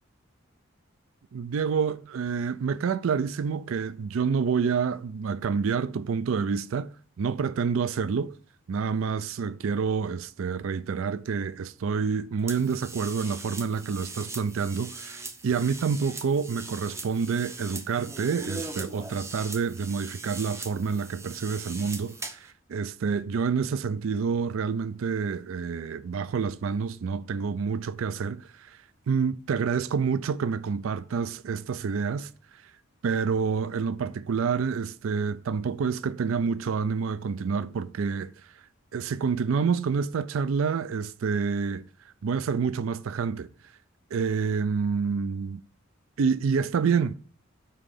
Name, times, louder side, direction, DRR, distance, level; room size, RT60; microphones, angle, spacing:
voice 1, 1.3-6.9 7.2-8.3 8.7-28.8 29.1-32.3 33.0-38.3 38.9-41.8 42.2-43.5 44.1-45.6 46.2-47.2, right 5 dB, 75° right, 0.4 m, -28 dB
sound 1, 12.5-22.5, right 3 dB, 15° right, 0.5 m, -40 dB
5.6 x 4.9 x 6.4 m
head